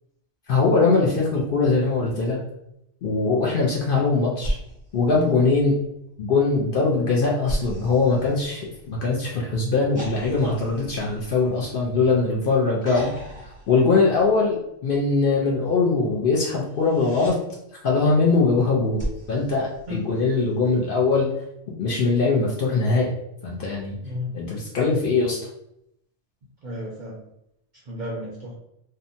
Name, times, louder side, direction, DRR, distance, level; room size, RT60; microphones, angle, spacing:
voice 1, 0.5-2.4 3.0-4.6 4.9-5.8 6.2-13.1 13.7-17.4 17.8-21.3 21.8-23.2 23.4-24.0 24.3-25.4, left 3 dB, 60° left, -3 dB, 0.6 m, -21 dB
sound 1, 4.4-6.0 7.5-9.1 10.0-12.2 12.8-14.6 16.6-17.4 19.0-20.5 22.0-22.1, equal, 20° left, 0.8 m, -36 dB
voice 2, 24.0-24.3 26.6-27.2 27.9-28.5, left 1 dB, 55° right, -3 dB, 0.5 m, -33 dB
2.7 x 2.1 x 2.6 m, 0.80 s
omnidirectional pair, 1.2 m